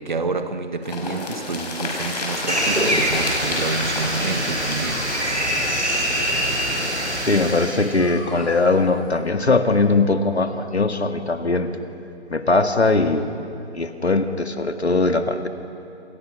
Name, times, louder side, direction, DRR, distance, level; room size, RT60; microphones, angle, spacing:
voice 1, 0.0-5.1, right 3 dB, 40° right, 1.4 m, -28 dB
sound 1, 0.8-6.6 6.9-7.0 7.2-7.3, left 2 dB, 35° left, 5.8 m, -31 dB
Dog, 2.3-10.0, left 1 dB, ahead, 2.0 m, -44 dB
sound 2, 2.5-8.0, equal, 80° right, 7.3 m, -24 dB
voice 2, 7.2-11.7 12.3-13.3 13.7-15.5, left 3 dB, 70° left, 2.0 m, -20 dB
29.0 x 28.0 x 6.1 m
figure-of-eight pair, 150°, 34 cm